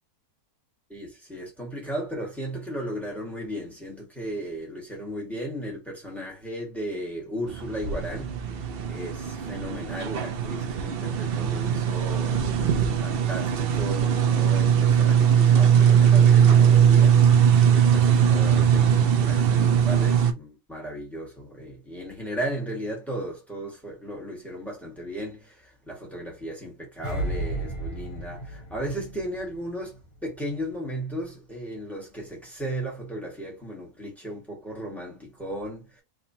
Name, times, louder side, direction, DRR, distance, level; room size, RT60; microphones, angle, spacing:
voice 1, 0.9-8.6 8.9-12.5 13.0-17.4 17.7-36.0, right 1 dB, ahead, 1.5 m, -35 dB
sound 1, 7.5-20.3, right 8 dB, 80° right, 0.5 m, -20 dB
sound 2, 27.0-30.2 30.5-30.8, right 1 dB, 20° left, 1.1 m, -33 dB
3.7 x 2.9 x 2.7 m
omnidirectional pair, 1.7 m